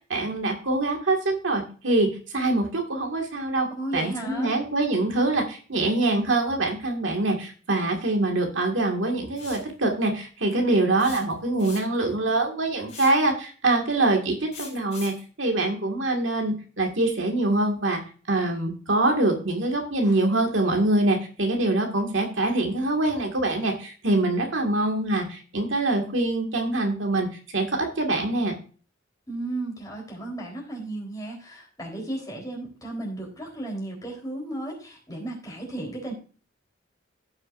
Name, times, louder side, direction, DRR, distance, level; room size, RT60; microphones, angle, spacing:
voice 1, 0.1-2.1 2.3-3.7 3.9-18.0 18.3-27.3 27.5-28.6, right 2 dB, 75° right, 2 dB, 2.0 m, -24 dB
voice 2, 3.7-4.6 29.3-36.1, right 1 dB, 20° left, -2 dB, 3.8 m, -34 dB
sound 1, 9.4-9.7 11.0-12.1 12.9-13.2 14.5-15.2, left 5 dB, 35° left, 3.6 m, -41 dB
15.5 x 6.4 x 2.6 m, 0.38 s
head